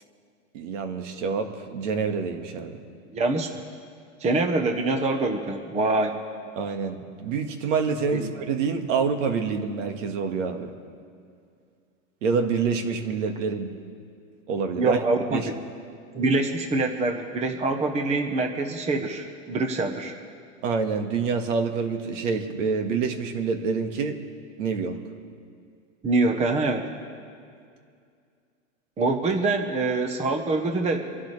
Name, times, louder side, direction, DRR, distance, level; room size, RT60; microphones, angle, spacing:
voice 1, 0.5-2.8 6.5-10.7 12.2-13.7 14.5-15.0 15.3-15.5 20.6-24.2 24.6-25.0, right 5 dB, 65° right, 5 dB, 1.8 m, -27 dB
voice 2, 3.1-3.6 4.2-6.1 8.1-8.3 14.8-15.6 16.1-20.1 26.0-26.9 29.0-31.2, right 3 dB, 15° right, 5 dB, 1.0 m, -25 dB
27.0 x 11.5 x 3.3 m, 2.3 s
supercardioid pair, 140°, 40 cm